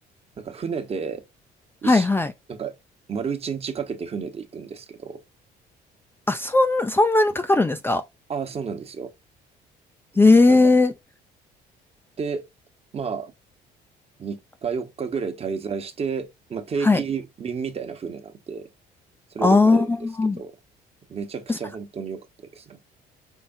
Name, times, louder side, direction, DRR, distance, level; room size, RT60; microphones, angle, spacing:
voice 1, 0.4-1.2 1.8-2.1 2.5-2.7 3.1-5.2 8.3-9.1 10.5-10.6 12.2-12.5 12.9-13.3 14.2-18.7 19.3-19.9 20.4-20.5 21.1-22.3 22.5-22.8, right 6 dB, 35° right, 1.1 m, -31 dB
voice 2, 1.8-2.3 6.3-8.0 10.2-10.9 16.8-17.0 19.4-20.4 21.5-21.6, left 3 dB, 15° left, 0.5 m, -18 dB
5.7 x 3.3 x 2.5 m
cardioid pair, 110°, 17 cm